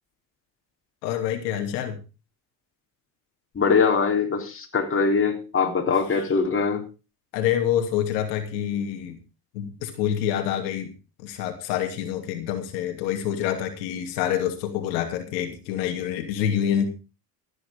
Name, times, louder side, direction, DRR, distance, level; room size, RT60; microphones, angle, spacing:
voice 1, 1.0-2.0 6.1-6.2 7.3-9.2 9.5-10.9 11.2-16.9, left 10 dB, 85° left, 4 dB, 2.8 m, -27 dB
voice 2, 3.6-6.8, left 5 dB, 25° left, 2 dB, 3.7 m, -22 dB
14.0 x 9.6 x 5.1 m, 0.32 s
supercardioid pair, 95°, 49 cm